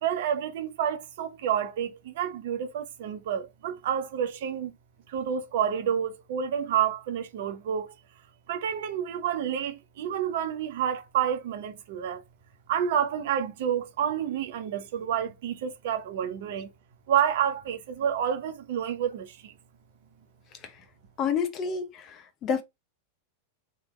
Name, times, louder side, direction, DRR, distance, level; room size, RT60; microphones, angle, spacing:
voice 1, 0.0-4.7 5.1-7.9 8.5-12.2 12.7-16.7 17.1-19.5, right 9 dB, 55° right, 1.0 m, -29 dB
voice 2, 21.2-22.6, left 6 dB, 35° left, 0.9 m, -29 dB
3.5 x 3.3 x 4.3 m
figure-of-eight pair, 90°, 0 cm